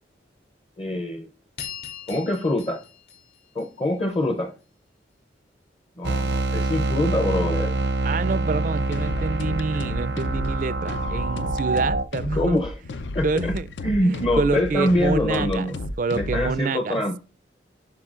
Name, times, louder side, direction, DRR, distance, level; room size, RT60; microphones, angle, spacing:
voice 1, 0.8-1.3 2.1-2.8 3.5-4.5 6.0-7.7 12.3-12.8 13.1-13.5 13.8-15.7 16.1-17.2, left 1 dB, 30° left, 0.6 m, -24 dB
sound 1, 1.6-4.1, left 8 dB, 55° left, 2.7 m, -40 dB
sound 2, 6.0-12.0, right 2 dB, 80° right, 0.6 m, -26 dB
voice 2, 8.0-12.6 13.2-13.7 14.0-15.7 16.0-17.0, right 4 dB, 45° right, 0.3 m, -27 dB
sound 3, 8.9-16.6, left 1 dB, 85° left, 0.6 m, -32 dB
11.0 x 5.0 x 2.5 m
head